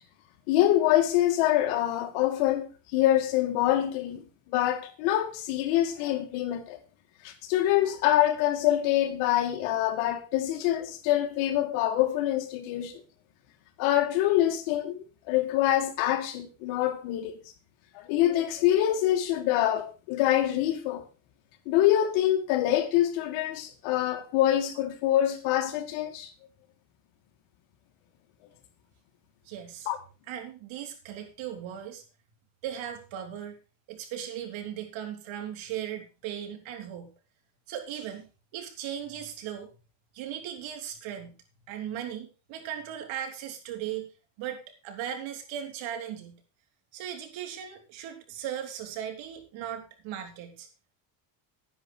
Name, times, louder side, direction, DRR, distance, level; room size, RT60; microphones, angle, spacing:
voice 1, 0.5-6.8 7.2-13.0 13.8-17.4 17.9-21.0 21.7-26.3 29.9-30.0, left 13 dB, 85° left, 2.5 m, -25 dB
voice 2, 29.5-29.9 30.3-32.0 32.6-33.6 33.9-37.1 37.7-39.7 40.1-41.4 41.7-44.1 44.4-46.4 46.9-50.7, right 10 dB, 70° right, 4.0 m, -37 dB
11.5 x 10.0 x 4.6 m
cardioid pair, 125°, 48 cm